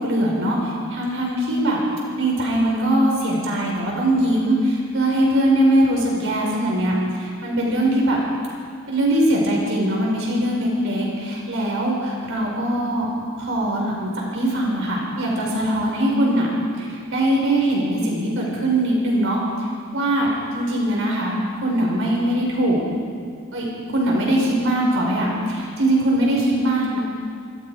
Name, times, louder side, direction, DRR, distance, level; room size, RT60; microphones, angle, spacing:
voice 1, 0.0-1.8 2.2-8.2 8.9-13.1 13.4-16.5 16.8-19.4 19.9-21.4 21.6-22.8 23.5-27.0, right 1 dB, 65° right, -2 dB, 5.6 m, -21 dB
27.5 x 26.0 x 5.1 m, 2.2 s
head